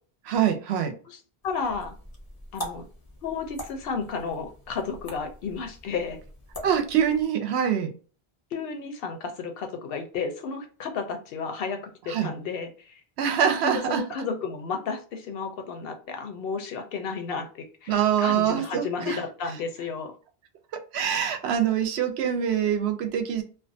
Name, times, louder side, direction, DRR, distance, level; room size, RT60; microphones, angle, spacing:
voice 1, 0.3-0.9 6.6-7.9 12.1-12.3 13.2-14.0 17.9-19.2 20.9-23.4, right 9 dB, 80° right, 6 dB, 0.8 m, -24 dB
voice 2, 1.4-2.0 2.5-2.8 3.2-6.2 8.5-13.0 13.6-20.1, left 5 dB, 70° left, 5 dB, 0.7 m, -32 dB
sound 1, 1.4-7.3, equal, 25° left, 0.5 m, -43 dB
2.4 x 2.2 x 2.5 m, 0.38 s
omnidirectional pair, 1.1 m